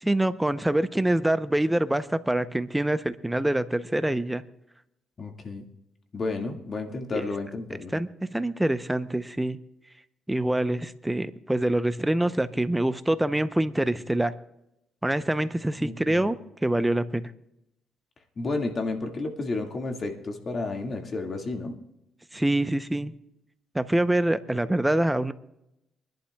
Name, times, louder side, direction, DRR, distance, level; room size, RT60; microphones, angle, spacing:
voice 1, 0.0-4.4 7.1-7.2 7.9-9.6 10.3-14.3 15.0-16.4 16.6-17.3 22.3-23.1 23.7-25.3, right 1 dB, 10° right, 12 dB, 0.7 m, -25 dB
voice 2, 5.2-5.7 6.1-7.9 15.8-16.3 18.4-21.8, left 3 dB, 40° left, 3 dB, 2.0 m, -31 dB
24.0 x 11.5 x 2.3 m, 0.85 s
cardioid pair, 90°, 0 cm